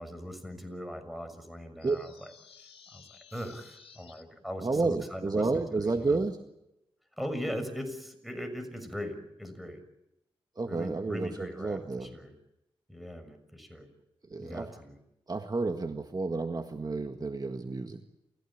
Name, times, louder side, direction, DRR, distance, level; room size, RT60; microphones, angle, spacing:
voice 1, 0.0-2.1 2.6-6.2 7.2-9.8 10.7-12.3 12.9-13.9 14.4-15.0, equal, ahead, 9 dB, 6.4 m, -40 dB
sound 1, 1.8-4.2, left 6 dB, 70° left, 2.7 m, -55 dB
voice 2, 4.6-6.4 10.5-12.1 14.3-14.8 15.3-18.0, right 3 dB, 40° right, 6 dB, 1.8 m, -31 dB
29.0 x 16.0 x 8.8 m, 0.88 s
cardioid pair, 50°, 10 cm